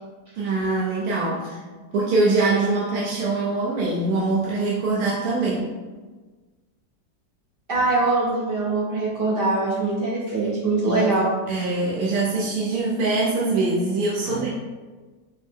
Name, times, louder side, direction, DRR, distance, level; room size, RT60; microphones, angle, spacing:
voice 1, 0.4-1.6 1.9-5.7 10.8-11.0 11.5-14.5, right 3 dB, 65° right, -6 dB, 1.1 m, -23 dB
voice 2, 7.7-11.4 14.3-14.4, right 3 dB, 50° right, -6 dB, 0.7 m, -23 dB
5.4 x 2.1 x 3.4 m, 1.3 s
omnidirectional pair, 1.9 m